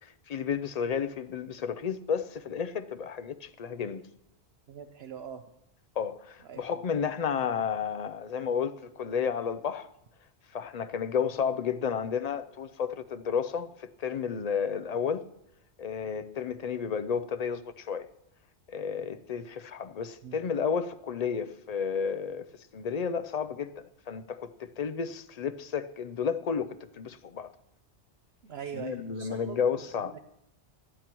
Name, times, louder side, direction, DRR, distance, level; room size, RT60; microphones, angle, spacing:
voice 1, 0.3-4.0 6.0-9.9 10.5-15.2 15.8-18.1 18.7-22.4 22.7-27.5 28.7-30.1, left 6 dB, 45° left, 0.5 m, -32 dB
voice 2, 4.7-5.5 6.4-6.7 20.2-20.4 28.4-30.2, right 8 dB, 70° right, 0.9 m, -42 dB
17.5 x 12.0 x 3.0 m
omnidirectional pair, 1.1 m